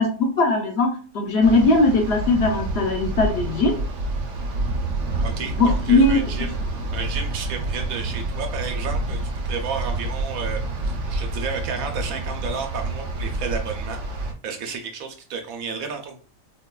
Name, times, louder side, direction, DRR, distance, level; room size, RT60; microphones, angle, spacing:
voice 1, 0.0-3.7 5.6-6.2, left 2 dB, 60° left, 2 dB, 0.7 m, -19 dB
sound 1, 1.4-14.3, right 2 dB, 65° right, 0.9 m, -28 dB
voice 2, 5.2-6.6 6.9-14.0 14.4-16.2, right 5 dB, 90° right, 4 dB, 1.1 m, -32 dB
4.0 x 2.2 x 2.2 m, 0.39 s
omnidirectional pair, 1.4 m